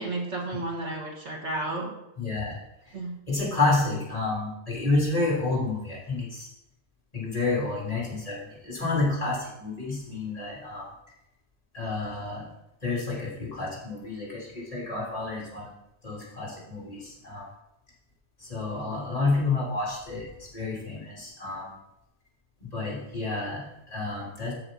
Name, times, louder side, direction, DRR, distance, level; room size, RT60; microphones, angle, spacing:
voice 1, 0.0-1.9 2.9-3.2, right 2 dB, 80° right, -1 dB, 2.3 m, -32 dB
voice 2, 2.2-2.6 2.9-3.0 3.3-6.5 7.1-10.8 11.7-12.5 12.8-15.7 16.0-17.5 18.4-21.7 22.6-24.5, left 3 dB, 30° left, -6 dB, 3.8 m, -29 dB
13.5 x 5.9 x 4.1 m, 0.87 s
omnidirectional pair, 1.2 m